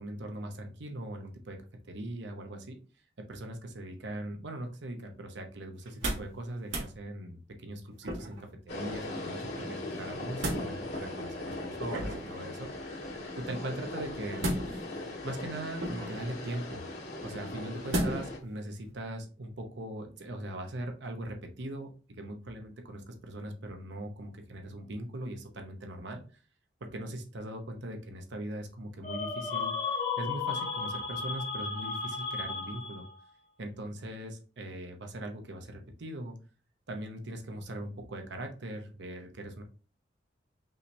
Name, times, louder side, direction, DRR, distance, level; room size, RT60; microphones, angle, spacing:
voice 1, 0.0-2.8 3.2-13.0 13.4-14.9 15.2-16.8 17.2-26.2 26.8-33.1 33.6-36.4 36.9-39.6, right 1 dB, 65° right, 4 dB, 0.8 m, -40 dB
sound 1, 5.8-6.4 6.6-6.9 8.0-8.5 10.0-10.7 11.9-12.4 14.4-15.0 15.8-16.3 17.9-18.4 18.8-18.9, right 1 dB, 90° right, 1.6 m, -33 dB
sound 2, 8.7-18.4, left 2 dB, 65° left, 2.5 m, -39 dB
sound 3, 29.0-33.2, left 5 dB, 45° left, 1.2 m, -34 dB
5.5 x 3.3 x 2.7 m, 0.38 s
head